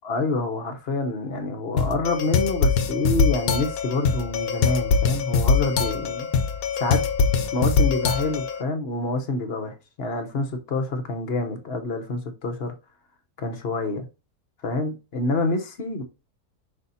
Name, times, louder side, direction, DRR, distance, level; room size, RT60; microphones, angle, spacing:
voice 1, 0.0-6.3 6.8-7.0 7.5-12.7 13.4-14.1 14.6-16.0, left 2 dB, 45° left, 1.1 m, -27 dB
sound 1, 1.8-8.6, left 5 dB, 75° left, 1.2 m, -23 dB
5.6 x 4.1 x 4.1 m
omnidirectional pair, 1.6 m